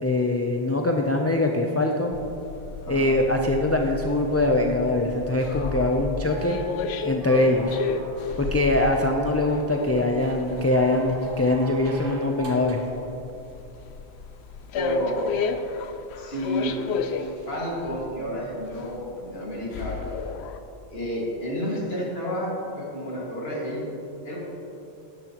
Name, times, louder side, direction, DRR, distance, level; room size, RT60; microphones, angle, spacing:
voice 1, 0.0-2.2 2.9-6.6 7.0-7.8 8.4-12.8, left 2 dB, 25° left, 1 dB, 0.3 m, -23 dB
sound 1, 2.1-20.6, left 5 dB, 85° left, 0.8 m, -33 dB
sound 2, 6.1-8.7 10.5-13.0 14.6-14.7, equal, 55° right, 1.5 m, -41 dB
voice 2, 14.7-15.2 16.2-16.7 17.1-20.0 20.9-23.9 24.2-24.4, equal, 70° left, -5 dB, 2.3 m, -30 dB
12.5 x 10.5 x 3.0 m, 2.9 s
omnidirectional pair, 1.1 m